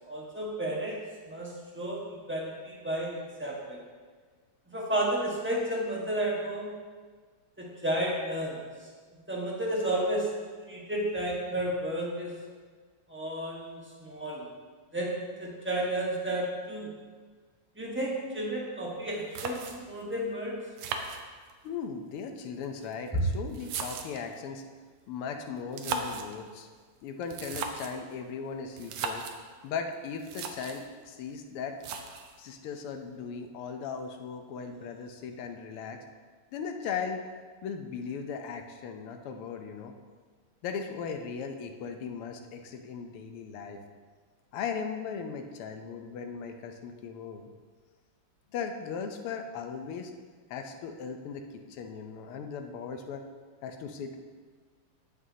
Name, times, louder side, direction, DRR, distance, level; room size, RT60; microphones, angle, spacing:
voice 1, 0.1-1.0 1.3-3.8 4.7-6.7 7.6-8.6 9.3-10.3 10.7-12.3 13.1-14.5 14.9-16.9 17.7-20.5 23.1-23.2, right 1 dB, 5° right, -4 dB, 0.9 m, -32 dB
sound 1, 19.0-19.1 19.3-20.0 20.8-21.7 22.6-24.3 25.6-26.4 27.2-28.0 28.8-29.4 29.9-30.0 30.2-30.9 31.8-32.4, right 5 dB, 85° right, 1.7 m, -37 dB
voice 2, 21.6-24.6 25.1-26.7 27.0-29.2 29.6-31.8 32.4-36.0 36.5-37.2 37.6-39.9 40.6-43.8 44.5-47.5 48.5-50.1 50.5-53.2 53.6-54.2, left 6 dB, 85° left, 5 dB, 1.7 m, -38 dB
14.5 x 6.2 x 2.8 m, 1.5 s
omnidirectional pair, 2.4 m